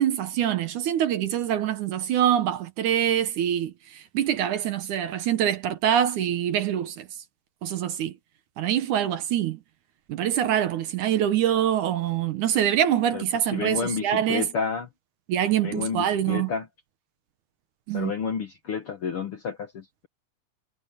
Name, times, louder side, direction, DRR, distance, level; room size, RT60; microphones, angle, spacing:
voice 1, 0.0-7.1 7.6-8.1 8.6-9.6 10.1-14.5 15.3-16.5 17.9-18.1, right 10 dB, 70° right, 2.3 m, -25 dB
voice 2, 13.5-14.9 15.6-16.7 17.9-20.1, left 6 dB, 60° left, 1.6 m, -30 dB
omnidirectional pair, 4.1 m